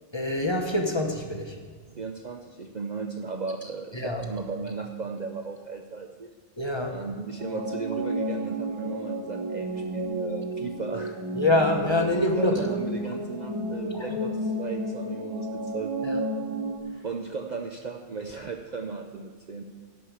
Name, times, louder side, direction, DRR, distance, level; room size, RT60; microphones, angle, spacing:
voice 1, 0.1-1.6 3.9-4.2 6.6-7.0 11.3-12.6 13.9-14.0 16.0-16.2, left 1 dB, 25° left, 2 dB, 0.9 m, -25 dB
voice 2, 2.0-6.3 6.9-11.2 12.4-15.9 17.0-19.6, right 4 dB, 50° right, 3 dB, 0.6 m, -36 dB
sound 1, 7.4-16.8, right 1 dB, 30° right, 1.9 m, -32 dB
11.5 x 4.8 x 8.0 m, 1.5 s
omnidirectional pair, 1.2 m